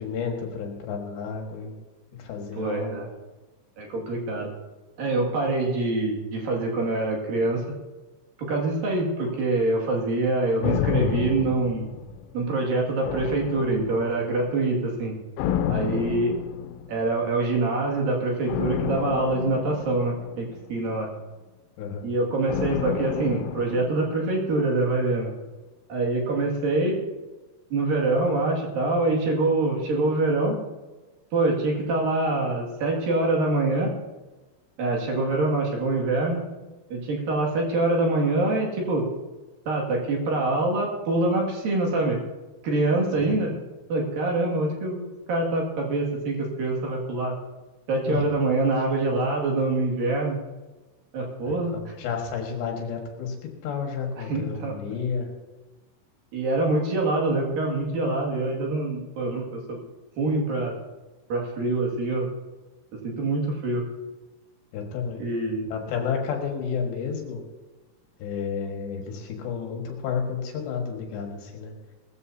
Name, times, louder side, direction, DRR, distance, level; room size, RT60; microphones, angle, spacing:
voice 1, 0.0-1.7 2.2-3.0 21.8-22.1 43.2-43.3 48.1-48.2 51.5-53.4 53.6-55.3 64.7-65.3 65.7-67.4 68.2-71.7, left 6 dB, 65° left, 1 dB, 3.7 m, -31 dB
voice 2, 2.5-3.1 3.8-4.5 5.0-7.6 8.4-11.9 12.3-15.1 15.7-16.3 16.9-21.1 22.0-25.3 25.9-27.0 27.7-30.6 31.3-33.9 34.8-36.4 36.9-39.0 39.7-42.2 42.6-43.5 43.9-45.0 45.3-47.3 47.9-50.4 51.1-51.9 54.2-54.7 56.3-59.9 60.2-60.8 61.3-62.3 63.0-63.8 65.2-65.7, right 2 dB, 50° right, -1 dB, 3.4 m, -25 dB
sound 1, 10.6-12.5 13.0-14.3 15.4-17.1 18.5-20.9 22.5-24.7 24.9-25.0, left 9 dB, 90° left, 3.2 m, -30 dB
20.0 x 14.5 x 2.8 m, 1.2 s
omnidirectional pair, 5.7 m